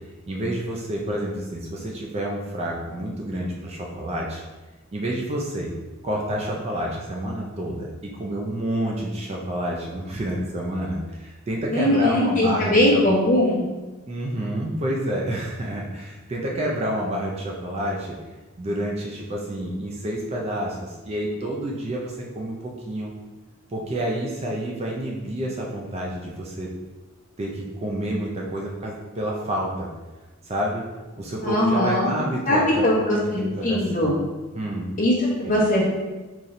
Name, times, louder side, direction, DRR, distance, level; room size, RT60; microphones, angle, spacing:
voice 1, 0.3-4.4 4.9-5.7 6.0-13.0 14.1-18.2 18.6-23.1 23.7-26.7 27.4-29.9 30.4-30.8 31.2-34.1 34.5-34.9 35.4-35.6, right 1 dB, 30° right, -1 dB, 0.3 m, -29 dB
voice 2, 11.7-13.6 31.4-32.1 32.5-34.1 35.0-35.1 35.4-35.8, left 1 dB, 35° left, -4 dB, 0.8 m, -20 dB
4.0 x 3.0 x 2.6 m, 1.2 s
head